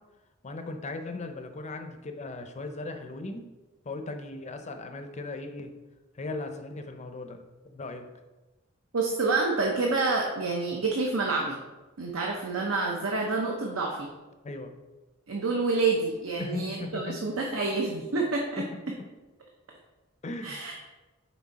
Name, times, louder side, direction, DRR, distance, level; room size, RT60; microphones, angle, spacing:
voice 1, 0.4-3.5 3.8-5.7 6.2-8.1 14.4-14.7 16.4-17.2 18.6-18.7 20.2-20.8, left 2 dB, 35° left, 6 dB, 0.5 m, -38 dB
voice 2, 8.9-11.6 12.0-14.1 15.3-18.9 20.4-20.7, right 3 dB, 75° right, 0 dB, 0.8 m, -28 dB
6.0 x 4.5 x 4.1 m, 1.1 s
head